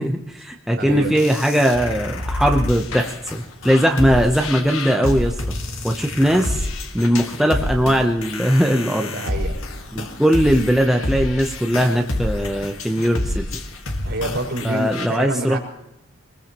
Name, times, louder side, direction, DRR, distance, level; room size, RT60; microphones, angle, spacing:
voice 1, 0.0-5.4 5.8-6.7 6.9-9.1 9.9-13.4 14.6-15.6, equal, ahead, 2 dB, 0.7 m, -19 dB
voice 2, 0.8-1.1 9.1-9.6 14.0-15.6, right 1 dB, 60° right, -2 dB, 5.2 m, -27 dB
sound 1, 0.9-15.1, left 2 dB, 85° left, 1.8 m, -28 dB
23.0 x 20.0 x 3.0 m, 0.86 s
head